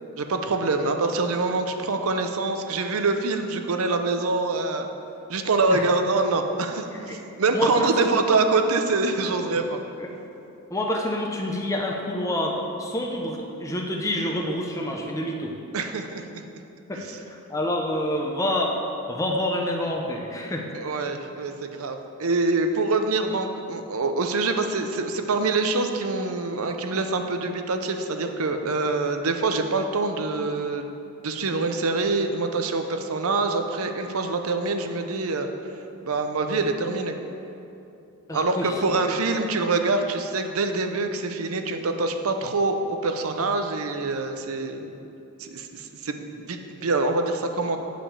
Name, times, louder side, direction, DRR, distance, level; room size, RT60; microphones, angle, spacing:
voice 1, 0.2-4.9 5.3-9.8 15.7-16.2 16.9-17.1 20.7-30.8 31.2-35.5 36.0-37.2 38.3-45.0 45.4-47.8, right 3 dB, 75° right, 6 dB, 0.7 m, -25 dB
voice 2, 6.9-7.2 7.5-8.4 10.0-10.2 10.7-15.5 16.9-18.7 19.1-20.7 38.3-38.7, left 1 dB, 15° left, 0 dB, 0.6 m, -28 dB
7.6 x 5.1 x 7.1 m, 2.7 s
head